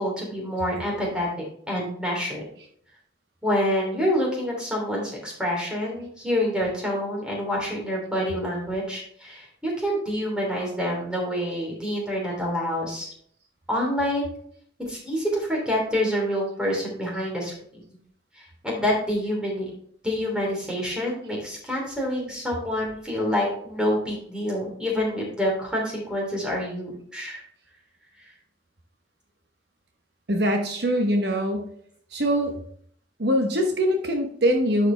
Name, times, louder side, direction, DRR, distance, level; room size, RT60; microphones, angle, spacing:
voice 1, 0.0-2.4 3.4-13.1 13.7-14.3 14.9-17.8 18.4-19.6 20.0-27.4 28.2-28.3, equal, 5° right, -3 dB, 3.0 m, -27 dB
voice 2, 30.3-31.7 32.1-32.5 33.2-34.9, equal, 60° right, 3 dB, 1.0 m, -23 dB
10.5 x 5.0 x 3.3 m, 0.63 s
head